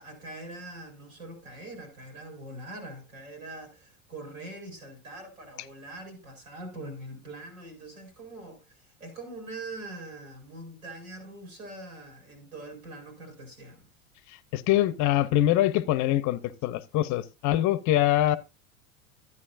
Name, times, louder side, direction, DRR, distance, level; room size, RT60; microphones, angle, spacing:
voice 1, 0.0-13.8, right 2 dB, 85° right, 4.9 m, -43 dB
voice 2, 14.5-18.4, left 13 dB, 45° left, 0.7 m, -24 dB
12.5 x 9.6 x 2.5 m
hypercardioid pair, 85°, 41 cm